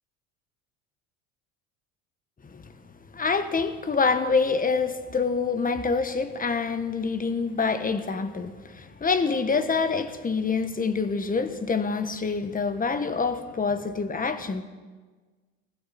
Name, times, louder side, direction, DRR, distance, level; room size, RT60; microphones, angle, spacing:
voice 1, 3.1-14.6, left 4 dB, 20° left, 10 dB, 1.3 m, -26 dB
19.5 x 15.0 x 4.4 m, 1.4 s
hypercardioid pair, 85°, 39 cm